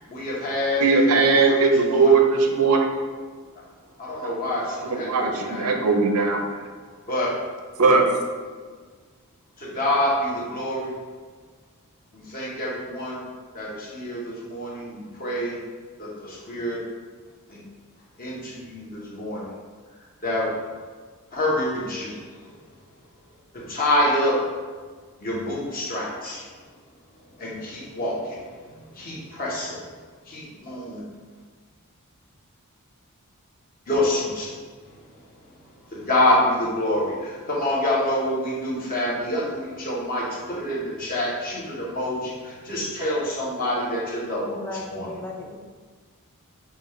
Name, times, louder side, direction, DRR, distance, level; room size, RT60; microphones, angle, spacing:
voice 1, 0.1-1.5 1.9-2.1 4.0-5.7 7.1-7.3 9.6-10.9 12.3-13.2 13.5-15.6 16.0-16.8 17.5-17.6 18.2-19.5 20.2-20.5 21.3-22.2 23.7-24.4 25.2-26.4 27.4-28.4 28.9-29.8 30.3-31.0 33.9-34.5 35.9-45.1, left 1 dB, 40° left, -6 dB, 1.1 m, -26 dB
voice 2, 0.8-2.9 4.8-6.4 7.8-8.1, right 4 dB, 80° right, 4 dB, 0.6 m, -19 dB
voice 3, 44.4-45.6, left 2 dB, 10° left, 0 dB, 0.3 m, -36 dB
6.2 x 2.4 x 3.1 m, 1.5 s
head